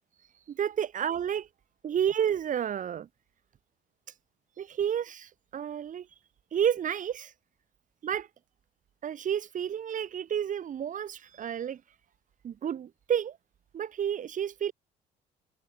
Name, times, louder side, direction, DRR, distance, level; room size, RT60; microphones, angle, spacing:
voice 1, 0.5-1.5 1.8-3.1 4.6-6.1 6.5-7.3 8.0-8.3 9.0-11.8 12.4-13.4 13.7-14.7, right 9 dB, 50° right, 5.4 m, -30 dB
cardioid pair, 110°, 17 cm